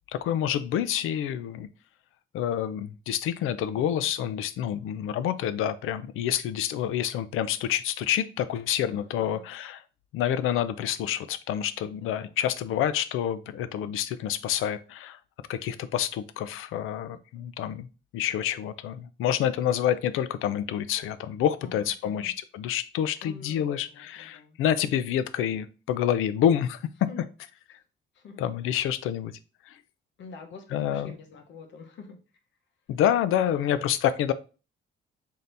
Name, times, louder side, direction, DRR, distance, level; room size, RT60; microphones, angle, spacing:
voice 1, 0.1-1.7 2.3-9.8 10.1-15.2 15.5-17.9 18.1-27.1 28.4-29.3 29.7-29.8 30.7-31.1 32.9-34.3, left 10 dB, 85° left, 0.4 m, -28 dB
voice 2, 3.7-4.1 9.0-9.5 12.1-12.4 21.6-22.3 23.2-24.6 27.1-27.3 28.1-28.5 30.2-32.2 33.5-33.8, left 4 dB, 65° left, 0.8 m, -46 dB
3.9 x 2.8 x 3.3 m
cardioid pair, 160°, 21 cm